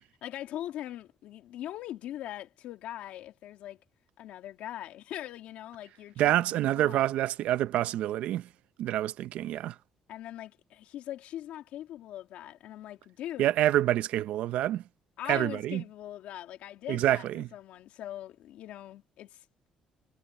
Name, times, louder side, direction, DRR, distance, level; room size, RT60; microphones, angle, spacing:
voice 1, 0.2-3.8 4.2-7.2 10.1-13.5 15.2-19.4, left 12 dB, 80° left, 2.2 m, -41 dB
voice 2, 6.2-8.5 8.8-9.7 13.4-14.8 15.3-15.8 16.9-17.5, right 13 dB, 80° right, 0.8 m, -27 dB
cardioid pair, 130°, 2 cm